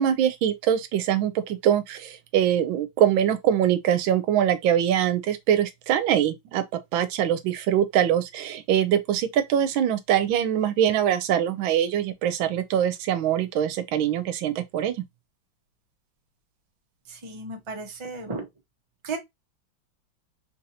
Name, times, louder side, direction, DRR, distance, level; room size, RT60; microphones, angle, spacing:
voice 1, 0.0-6.6 6.9-15.0, right 10 dB, 85° right, 1.4 m, -23 dB
voice 2, 17.1-18.4 19.0-19.2, right 3 dB, 50° right, 0.3 m, -34 dB
3.6 x 2.7 x 2.7 m
omnidirectional pair, 2.2 m